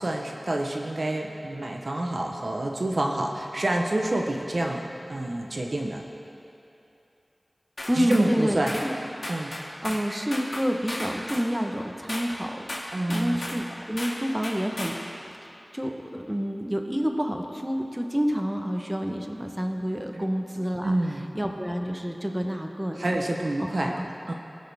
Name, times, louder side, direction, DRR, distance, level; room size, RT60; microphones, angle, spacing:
voice 1, 0.0-6.0 7.9-8.9 9.3-9.5 12.9-13.4 20.1-20.2 20.8-21.3 23.0-23.9 24.3-24.4, right 1 dB, 60° right, 1 dB, 0.8 m, -28 dB
sound 1, 7.8-8.3 8.7-8.9 9.2-10.1 10.3-11.5 12.1-12.3 12.7-13.6 14.0-14.2 14.4-15.0, left 1 dB, 70° left, 2.0 m, -35 dB
voice 2, 7.9-8.9 9.8-12.6 13.1-14.9 15.2-21.0 21.3-23.0 23.6-24.1, equal, 10° right, 3 dB, 1.0 m, -28 dB
19.5 x 6.5 x 3.5 m, 2.8 s
wide cardioid pair, 45°, 0 cm